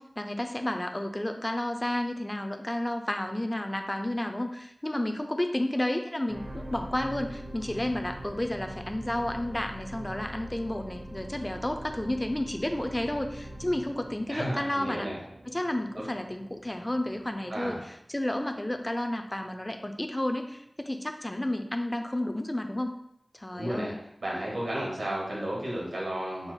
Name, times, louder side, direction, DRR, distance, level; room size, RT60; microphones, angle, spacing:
voice 1, 0.0-15.1 15.5-22.9 23.3-24.0, left 1 dB, 20° left, 5 dB, 0.4 m, -31 dB
sound 1, 6.3-18.7 19.2-19.3, right 1 dB, 50° right, 0.5 m, -43 dB
voice 2, 14.3-15.2 16.0-16.1 17.5-17.8 23.5-23.9 24.2-26.5, right 1 dB, 90° right, -4 dB, 1.3 m, -33 dB
5.4 x 2.0 x 4.4 m, 0.77 s
wide cardioid pair, 55°, 0 cm